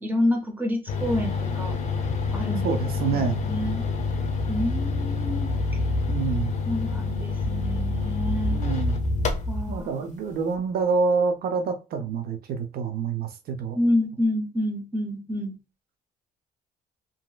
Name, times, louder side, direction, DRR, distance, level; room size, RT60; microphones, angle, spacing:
voice 1, 0.0-1.8 2.3-2.8 3.1-3.8 4.5-5.5 6.6-8.6 9.5-10.0 13.7-15.6, left 1 dB, 10° right, 0.9 m, -28 dB
sound 1, 0.9-9.8, left 3 dB, 45° left, 0.7 m, -27 dB
voice 2, 2.6-3.4 6.1-6.5 8.5-9.0 9.7-13.8, right 5 dB, 65° right, 0.7 m, -27 dB
3.0 x 2.8 x 2.3 m
cardioid pair, 110°, 17 cm